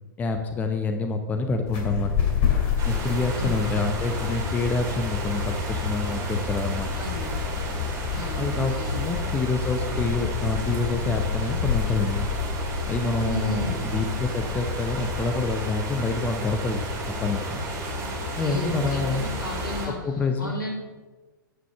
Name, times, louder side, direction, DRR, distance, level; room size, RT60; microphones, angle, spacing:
voice 1, 0.2-2.1 2.9-6.9 8.4-12.3 12.9-16.8 17.2-17.6 18.4-19.2 20.0-20.6, left 3 dB, 15° left, 6 dB, 0.7 m, -27 dB
sound 1, 1.7-15.5, left 6 dB, 40° left, 2.5 m, -30 dB
sound 2, 2.8-19.9, left 1 dB, 30° right, 2.6 m, -31 dB
voice 2, 3.3-3.8 7.0-7.3 8.1-9.1 13.2-13.8 17.9-20.0 20.4-20.7, equal, 80° left, -1 dB, 3.4 m, -35 dB
9.8 x 5.2 x 6.6 m, 1.3 s
figure-of-eight pair, 105°, 11 cm